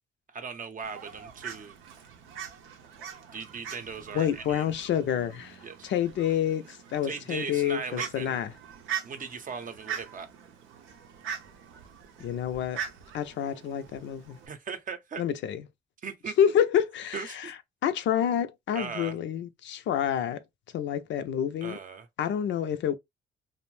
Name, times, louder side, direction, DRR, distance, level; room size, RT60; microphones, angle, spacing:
voice 1, 0.3-1.8 3.3-4.6 5.6-5.9 7.0-8.4 9.0-10.3 14.5-15.2 16.0-16.4 17.1-17.5 18.7-19.2 21.6-22.1, right 5 dB, 40° right, 0.6 m, -38 dB
Fowl, 0.8-14.5, right 8 dB, 90° right, 0.6 m, -42 dB
voice 2, 4.1-8.5 12.2-12.8 13.1-14.4 15.2-15.6 16.4-17.6 17.8-20.4 20.7-21.8 22.2-23.0, left 9 dB, 65° left, 0.4 m, -28 dB
2.5 x 2.1 x 3.1 m
cardioid pair, 90°, 20 cm